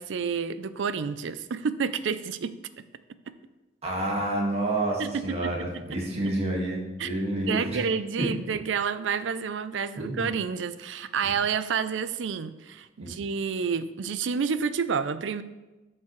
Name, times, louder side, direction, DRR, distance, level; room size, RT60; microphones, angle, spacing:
voice 1, 0.0-2.5 5.0-5.8 7.0-7.1 7.5-15.4, right 6 dB, 70° right, 13 dB, 0.4 m, -29 dB
voice 2, 3.8-6.8 7.0-7.8 10.0-10.3 13.0-13.1, right 1 dB, 35° right, -2 dB, 1.8 m, -29 dB
11.0 x 5.9 x 3.2 m, 1.1 s
head